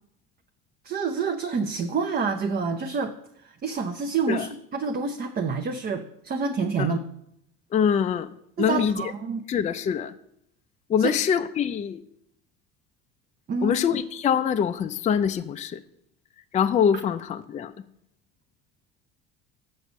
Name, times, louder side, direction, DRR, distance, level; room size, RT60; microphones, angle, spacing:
voice 1, 0.8-3.1 3.4-7.0 8.6-9.5 11.0-11.1 13.5-13.8, right 5 dB, 30° right, 0.6 m, -28 dB
voice 2, 7.7-8.3 8.6-9.1 9.5-10.1 10.9-12.0 13.6-15.8 16.5-17.7, left 8 dB, 25° left, 0.4 m, -24 dB
7.0 x 6.5 x 6.3 m
cardioid pair, 115°, 29 cm